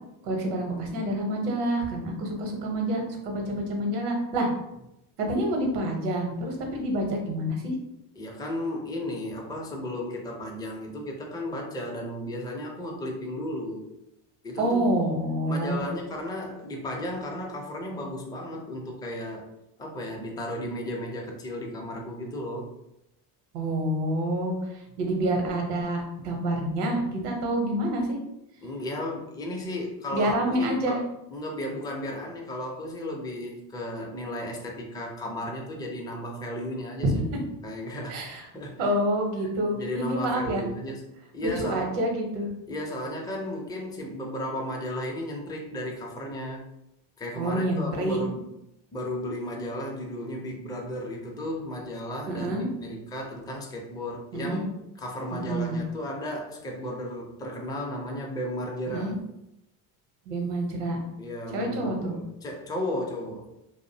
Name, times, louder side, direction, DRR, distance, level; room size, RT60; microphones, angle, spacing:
voice 1, 0.2-4.5 5.2-7.7 14.6-15.8 23.5-28.2 30.1-31.0 37.0-37.3 38.1-38.4 38.8-40.6 41.4-42.5 47.4-48.2 52.3-52.7 54.3-54.6 55.3-55.8 58.9-59.1 60.3-61.0 61.5-62.1, right 1 dB, 80° right, 2 dB, 0.8 m, -27 dB
voice 2, 8.2-13.9 14.4-15.0 15.5-19.5 19.8-22.7 28.6-31.0 31.3-37.1 37.6-38.9 39.7-41.9 42.7-46.7 47.2-48.4 48.9-54.7 55.0-59.1 61.2-63.5, left 1 dB, 10° left, -1 dB, 0.4 m, -34 dB
2.5 x 2.0 x 2.6 m, 0.87 s
supercardioid pair, 80°, 47 cm